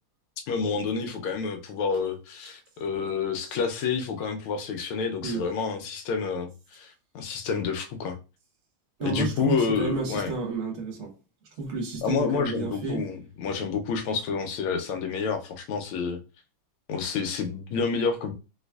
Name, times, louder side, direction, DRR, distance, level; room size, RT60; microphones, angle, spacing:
voice 1, 0.5-8.1 9.0-10.3 12.0-16.2 16.9-18.3, left 5 dB, 90° left, 1.5 m, -29 dB
voice 2, 9.0-11.1 11.6-13.0, right 4 dB, 45° right, 1.1 m, -31 dB
3.3 x 3.2 x 2.3 m
omnidirectional pair, 2.2 m